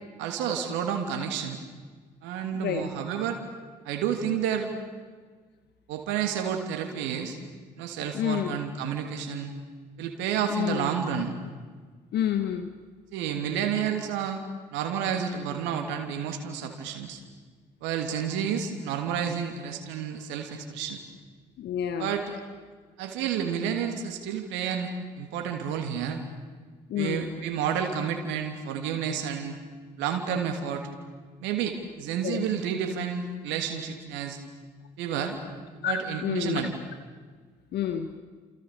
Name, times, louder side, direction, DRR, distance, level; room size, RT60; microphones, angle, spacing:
voice 1, 0.2-1.6 2.2-3.4 3.8-4.7 5.9-7.4 7.8-9.5 10.0-11.3 13.1-14.4 14.7-17.2 17.8-21.0 22.0-22.4 23.0-24.9 25.2-26.2 26.9-29.6 30.0-30.9 31.4-34.4 35.0-35.4 35.8-36.7, right 8 dB, 65° right, 4 dB, 3.0 m, -30 dB
voice 2, 2.5-2.9 8.1-8.5 10.5-10.9 12.1-12.7 21.6-22.1 26.9-27.3 32.2-32.4 35.8-36.7 37.7-38.1, left 9 dB, 55° left, 8 dB, 1.6 m, -29 dB
29.5 x 28.5 x 7.0 m, 1.5 s
figure-of-eight pair, 45°, 21 cm